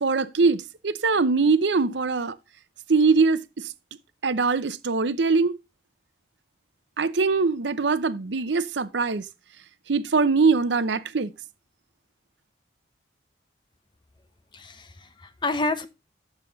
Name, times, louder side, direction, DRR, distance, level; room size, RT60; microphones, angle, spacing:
voice 1, 0.0-2.4 2.9-3.7 4.2-5.6 7.0-9.2 9.9-11.3, right 4 dB, 70° right, 0.7 m, -22 dB
voice 2, 14.5-15.9, left 3 dB, 25° left, 0.8 m, -29 dB
9.8 x 7.0 x 3.9 m
head